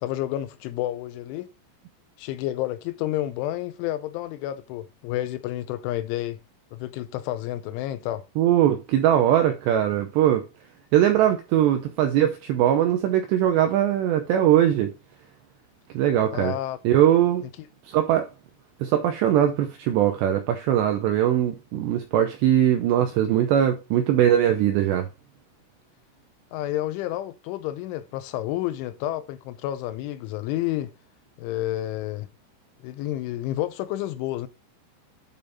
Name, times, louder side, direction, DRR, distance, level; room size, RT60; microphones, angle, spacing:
voice 1, 0.0-1.5 2.2-6.4 6.7-8.2 16.3-16.8 26.5-30.9 31.4-32.3 32.8-34.5, left 14 dB, 85° left, 2.8 m, -30 dB
voice 2, 8.4-10.4 10.9-14.9 15.9-16.5 16.8-17.4 17.9-18.3 18.8-25.1, right 11 dB, 85° right, 2.4 m, -21 dB
9.1 x 5.2 x 4.0 m
omnidirectional pair, 5.9 m